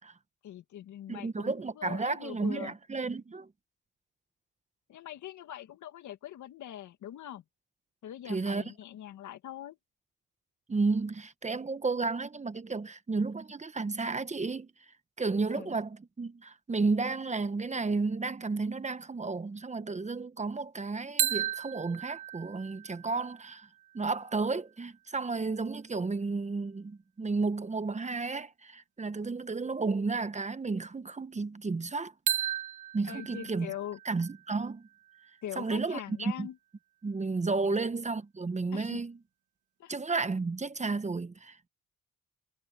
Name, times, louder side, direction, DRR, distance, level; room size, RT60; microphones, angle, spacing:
voice 1, 0.4-2.7 4.9-7.4 8.0-9.8 15.5-15.8 33.1-34.0 35.4-36.6 37.7-37.8 38.7-39.0 39.8-39.9, left 11 dB, 75° left, 2.1 m, -42 dB
voice 2, 1.1-3.5 8.3-8.6 10.7-14.7 15.2-23.7 23.9-32.1 32.9-33.7 34.0-34.9 35.6-36.5 37.0-39.2 39.9-41.7, right 3 dB, 25° right, 1.1 m, -32 dB
sound 1, 21.2-25.0 32.3-36.1, right 11 dB, 75° right, 1.4 m, -36 dB
cardioid pair, 90°, 30 cm